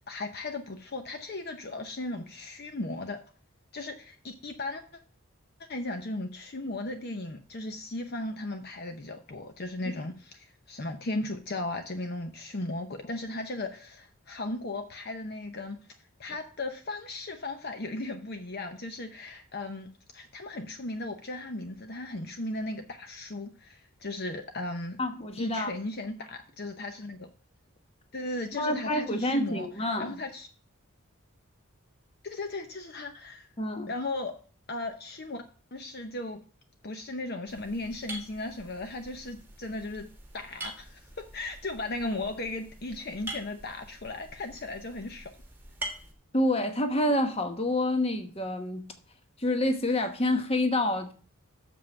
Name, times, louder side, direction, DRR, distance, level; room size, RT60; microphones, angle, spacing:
voice 1, 0.1-3.2 3.7-4.8 5.7-15.8 16.2-25.0 25.4-27.3 28.1-29.7 30.0-30.5 32.2-33.5 33.9-34.4 34.7-35.4 35.7-36.4 36.8-40.1 40.3-45.3, left 2 dB, 45° left, 0.8 m, -36 dB
voice 2, 25.0-25.7 28.6-30.2 33.6-33.9 46.3-48.9 49.4-51.1, left 1 dB, 25° left, 1.1 m, -28 dB
sound 1, 37.5-46.1, right 1 dB, 10° right, 1.6 m, -44 dB
6.9 x 5.6 x 7.0 m
head